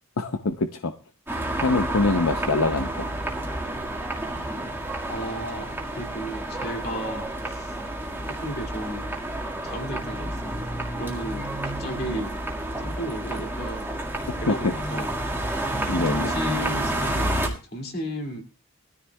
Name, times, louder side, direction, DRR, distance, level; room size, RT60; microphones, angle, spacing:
voice 1, 0.2-0.9 1.6-3.1 14.5-14.7 15.9-16.3, left 3 dB, 75° left, 0.7 m, -24 dB
sound 1, 1.3-17.5, right 1 dB, 10° right, 1.8 m, -30 dB
voice 2, 5.1-7.8 8.3-9.1 9.6-12.4 12.8-13.9 14.3-15.1 15.9-18.4, equal, 45° left, 2.4 m, -34 dB
21.0 x 13.5 x 2.3 m
head